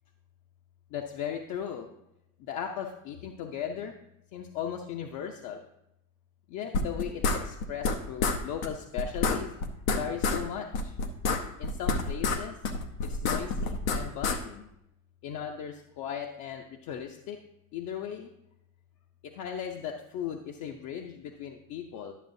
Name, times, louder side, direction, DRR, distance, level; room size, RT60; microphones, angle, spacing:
voice 1, 0.9-1.9 2.4-3.9 4.3-5.6 6.5-9.5 9.9-10.9 11.6-12.6 13.0-14.7 15.2-17.4 17.7-18.3 19.2-22.1, left 8 dB, 45° left, 2 dB, 0.7 m, -37 dB
sound 1, 6.7-8.0 8.2-8.4 8.6-8.7 9.0-10.4 10.7-12.4 12.6-14.4, left 4 dB, 90° left, 1.0 m, -27 dB
11.0 x 6.5 x 2.6 m, 0.83 s
supercardioid pair, 125°, 40 cm